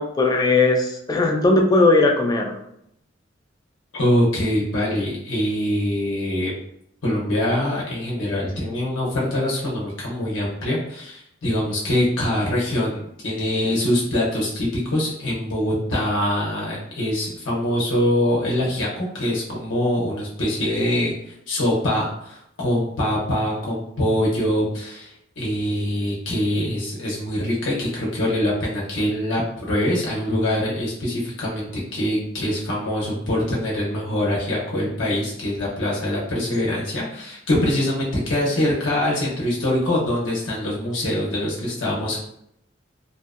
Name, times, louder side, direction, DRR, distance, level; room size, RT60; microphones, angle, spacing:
voice 1, 0.0-2.6, left 2 dB, 20° left, 2 dB, 0.3 m, -18 dB
voice 2, 3.9-6.5 7.0-42.2, left 1 dB, 75° left, -5 dB, 0.7 m, -24 dB
2.6 x 2.1 x 2.4 m, 0.75 s
head